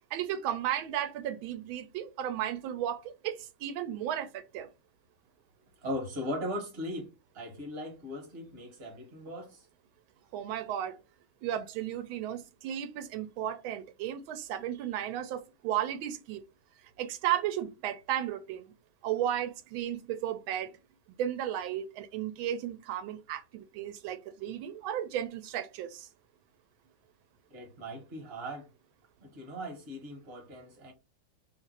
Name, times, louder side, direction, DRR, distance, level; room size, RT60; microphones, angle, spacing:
voice 1, 0.1-4.7 10.3-11.0 11.4-16.4 17.0-18.6 19.0-20.7 21.2-26.1, right 11 dB, 90° right, 1.4 m, -34 dB
voice 2, 5.8-9.7 27.5-28.7 29.2-30.9, equal, 35° right, 1.2 m, -39 dB
3.2 x 2.5 x 4.0 m
omnidirectional pair, 2.1 m